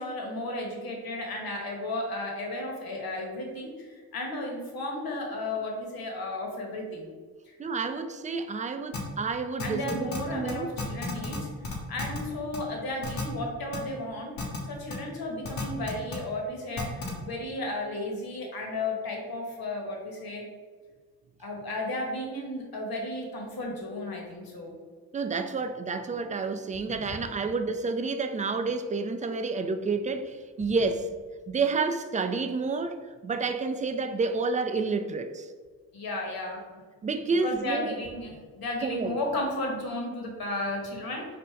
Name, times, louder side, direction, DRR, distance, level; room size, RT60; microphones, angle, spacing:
voice 1, 0.0-7.1 7.5-7.6 9.6-11.5 11.9-20.5 21.4-24.7 27.0-27.2 35.9-36.6 37.4-41.2, left 2 dB, 55° left, 0 dB, 1.3 m, -34 dB
voice 2, 7.6-10.7 25.1-31.1 31.5-35.5 37.0-38.0 38.8-39.2, right 4 dB, 20° right, 8 dB, 0.3 m, -29 dB
sound 1, 8.9-9.0 9.6-10.2 10.5-10.6 10.8-11.4 11.6-12.2 12.5-12.6 13.0-13.2 13.7-13.8 14.4-14.6 14.9-15.0 15.4-16.2 16.8-17.1, left 4 dB, 75° left, 1.1 m, -33 dB
3.3 x 2.5 x 4.5 m, 1.5 s
supercardioid pair, 45°, 42 cm